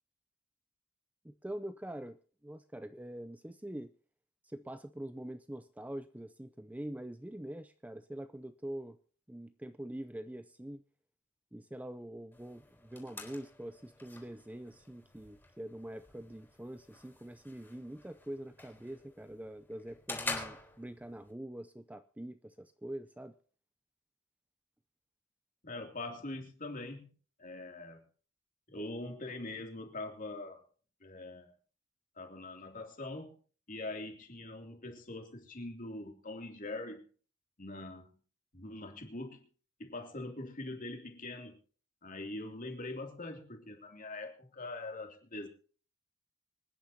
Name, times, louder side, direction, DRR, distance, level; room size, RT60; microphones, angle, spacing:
voice 1, 1.2-3.9 4.4-9.0 9.3-10.8 11.5-23.4, right 1 dB, 10° right, 10 dB, 0.5 m, -44 dB
sound 1, 12.3-21.3, left 2 dB, 10° left, 3.9 m, -47 dB
voice 2, 25.6-27.1 27.4-28.0 28.7-30.6 31.0-31.5 32.2-33.4 33.7-37.1 37.6-38.1 38.5-39.5 39.8-41.6 42.0-45.5, left 2 dB, 45° left, 3 dB, 2.8 m, -43 dB
25.5 x 10.0 x 2.8 m, 0.40 s
head